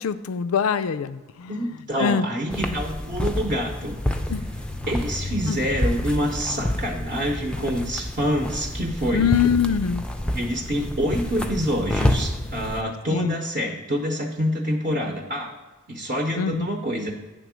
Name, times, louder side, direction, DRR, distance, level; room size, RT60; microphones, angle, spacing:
voice 1, 0.0-1.6 2.0-2.3 4.3-4.5 5.5-5.6 9.1-10.1 13.1-13.3 16.4-16.7, left 7 dB, 80° left, 12 dB, 0.4 m, -23 dB
voice 2, 1.5-4.0 4.9-9.3 10.3-15.5 15.9-17.1, equal, 40° right, 0 dB, 0.8 m, -26 dB
sound 1, 2.5-12.8, left 1 dB, 5° left, 0.4 m, -28 dB
9.1 x 3.6 x 6.1 m, 1.2 s
head